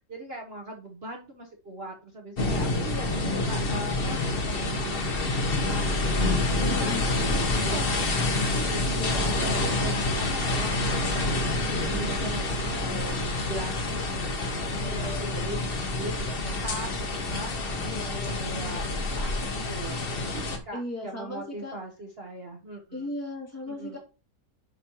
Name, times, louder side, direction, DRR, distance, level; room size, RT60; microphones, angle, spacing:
voice 1, 0.1-4.2 4.5-8.1 8.5-11.3 11.7-15.6 16.0-18.8 19.1-20.0 20.3-23.1 23.7-24.0, right 1 dB, 40° right, 1 dB, 1.0 m, -40 dB
sound 1, 2.4-20.6, left 2 dB, 40° left, 1.0 m, -27 dB
voice 2, 6.5-7.1 9.0-9.9 14.7-15.6 17.8-18.7 20.7-21.8 22.9-24.0, left 2 dB, 10° left, -2 dB, 2.4 m, -38 dB
9.2 x 5.1 x 3.0 m, 0.32 s
omnidirectional pair, 1.9 m